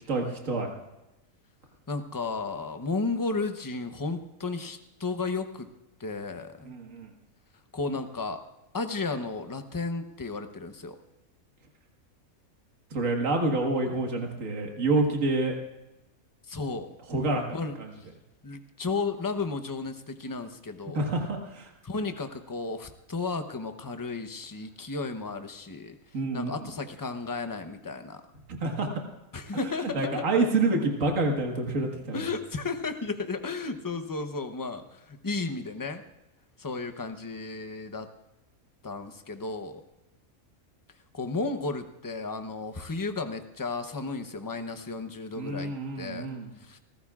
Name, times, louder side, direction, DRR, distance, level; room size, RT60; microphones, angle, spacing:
voice 1, 0.1-0.7 6.7-7.1 12.9-15.6 17.1-17.4 17.8-17.9 20.9-21.7 26.1-26.5 28.6-28.9 29.9-32.3 45.4-46.5, right 2 dB, 65° right, 2 dB, 2.0 m, -27 dB
voice 2, 1.9-5.7 6.0-6.7 7.7-8.4 8.7-11.0 16.5-17.0 17.5-18.1 18.4-21.1 21.8-26.0 26.3-28.2 29.3-30.3 32.1-36.0 36.6-38.1 38.8-39.8 41.1-46.3 46.6-46.8, left 3 dB, 20° left, 7 dB, 0.7 m, -33 dB
28.0 x 14.5 x 2.4 m, 0.96 s
omnidirectional pair, 1.5 m